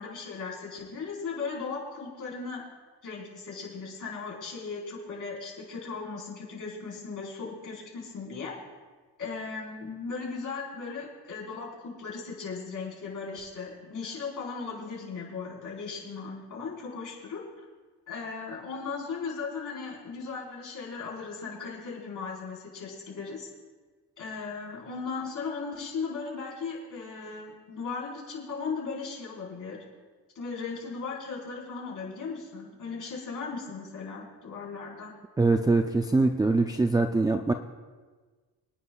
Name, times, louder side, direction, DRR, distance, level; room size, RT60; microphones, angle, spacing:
voice 1, 0.0-2.6 3.0-8.5 9.2-17.6 18.1-23.5 24.2-29.8 30.3-35.1, left 4 dB, 50° left, -4 dB, 4.6 m, -37 dB
voice 2, 35.4-37.5, right 3 dB, 10° right, 3 dB, 0.4 m, -23 dB
27.0 x 9.8 x 2.4 m, 1.4 s
cardioid pair, 125°, 40 cm